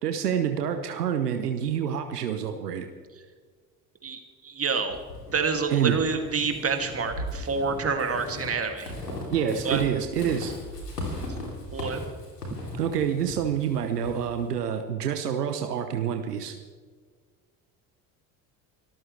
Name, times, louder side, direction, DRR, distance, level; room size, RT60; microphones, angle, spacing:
voice 1, 0.0-2.9 5.7-6.0 9.3-10.5 12.7-16.5, right 8 dB, 80° right, 7 dB, 1.1 m, -27 dB
voice 2, 4.0-5.0 5.3-8.9 9.6-9.8 11.7-12.0, right 5 dB, 30° right, 5 dB, 2.5 m, -28 dB
Walk footsteps / Squeak, 4.9-14.5, left 1 dB, 85° left, 3.1 m, -37 dB
24.5 x 13.5 x 3.4 m, 1.5 s
figure-of-eight pair, 55°, 47 cm